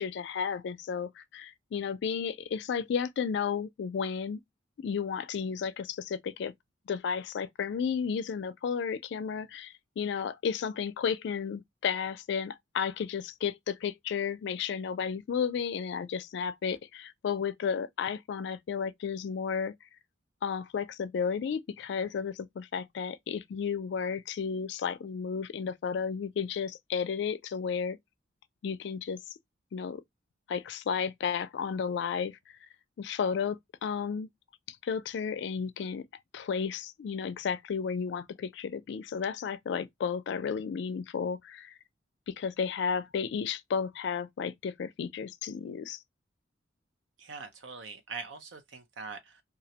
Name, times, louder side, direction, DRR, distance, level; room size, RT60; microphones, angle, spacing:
voice 1, 0.0-4.4 4.8-6.5 6.9-19.7 20.4-28.0 28.6-29.2 29.7-30.0 30.5-32.4 33.0-34.3 34.7-36.0 36.3-41.7 42.3-46.0, left 6 dB, 65° left, 0.3 m, -33 dB
voice 2, 47.2-49.4, right 4 dB, 75° right, 0.5 m, -43 dB
2.4 x 2.0 x 2.7 m
head